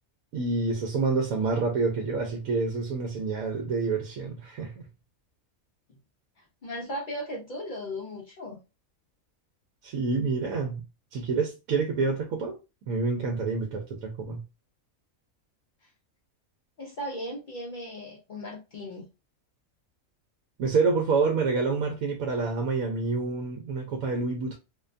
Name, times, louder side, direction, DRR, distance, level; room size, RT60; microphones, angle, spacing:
voice 1, 0.3-4.8 9.8-10.8 11.1-12.6 12.8-14.4 20.6-24.6, right 4 dB, 80° right, 1.0 m, -27 dB
voice 2, 6.6-8.6 16.8-19.1, equal, 70° left, 0.4 m, -36 dB
2.6 x 2.2 x 2.4 m
omnidirectional pair, 1.4 m